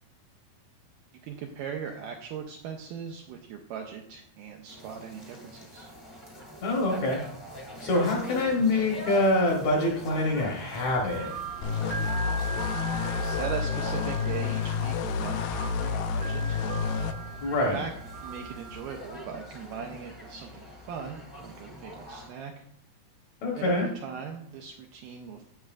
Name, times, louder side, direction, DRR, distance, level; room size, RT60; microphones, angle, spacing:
voice 1, 1.2-5.9 13.2-16.6 17.7-17.9 18.2-22.6 23.6-25.5, right 7 dB, 90° right, 3 dB, 1.9 m, -39 dB
sound 1, 4.7-22.3, equal, 20° left, 0.6 m, -44 dB
voice 2, 6.6-7.2 7.8-11.4 17.4-17.8 23.4-23.9, left 2 dB, 65° left, 0 dB, 1.8 m, -25 dB
sound 2, 10.8-19.1, right 4 dB, 75° right, 2.0 m, -40 dB
sound 3, 11.6-17.1, left 5 dB, 85° left, 1.9 m, -29 dB
10.5 x 7.5 x 2.4 m, 0.69 s
omnidirectional pair, 4.5 m